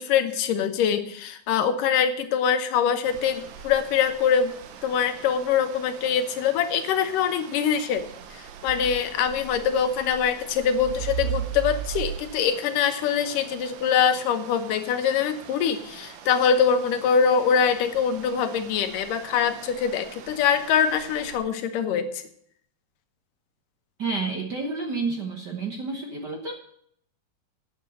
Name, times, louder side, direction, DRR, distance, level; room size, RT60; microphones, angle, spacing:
voice 1, 0.0-4.6 4.8-8.0 8.6-22.1, left 7 dB, 85° left, 8 dB, 2.7 m, -23 dB
sound 1, 3.0-21.4, right 9 dB, 85° right, 2.6 m, -39 dB
voice 2, 24.0-26.5, right 3 dB, 65° right, 2 dB, 1.0 m, -30 dB
9.1 x 8.1 x 7.6 m, 0.66 s
omnidirectional pair, 3.7 m